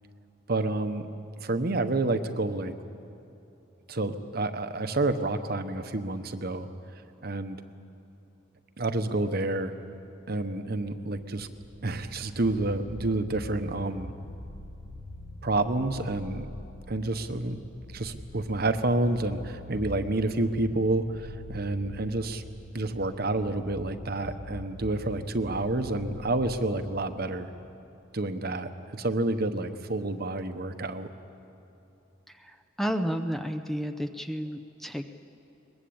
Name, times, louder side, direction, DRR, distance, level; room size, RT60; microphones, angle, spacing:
voice 1, 0.5-1.1 1.4-2.7 3.9-6.7 7.2-7.6 8.8-9.7 10.3-11.5 11.8-14.1 15.4-16.5 16.9-17.6 17.9-22.4 22.7-27.5 28.1-31.1, right 2 dB, 55° right, 8 dB, 1.1 m, -29 dB
sound 1, 11.5-26.7, left 1 dB, 70° left, 6.0 m, -44 dB
voice 2, 32.3-35.1, equal, ahead, 7 dB, 0.7 m, -32 dB
22.5 x 21.0 x 8.7 m, 2.9 s
head